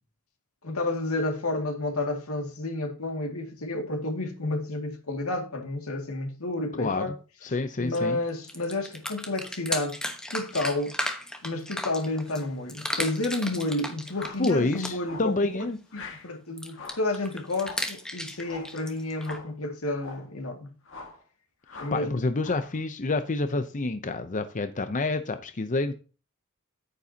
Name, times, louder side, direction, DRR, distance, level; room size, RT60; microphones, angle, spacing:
voice 1, 0.6-7.1 7.5-10.0 10.3-10.9 11.4-15.6 15.9-20.7 21.8-22.2, left 2 dB, 90° left, 2.2 m, -31 dB
voice 2, 6.8-7.1 7.4-8.2 14.4-15.8 21.9-25.9, left 3 dB, 35° left, 0.6 m, -28 dB
sound 1, 7.9-8.0 8.3-12.4 12.7-15.2 16.6-19.4, left 1 dB, 5° left, 1.1 m, -35 dB
sound 2, 14.1-14.5 15.0-15.4 15.9-16.3 16.7-17.1 17.6-17.9 18.4-18.8 19.2-19.5 19.9-20.3 20.8-21.2 21.7-22.0 22.4-22.8, left 4 dB, 60° left, 1.9 m, -43 dB
9.8 x 9.3 x 2.8 m
head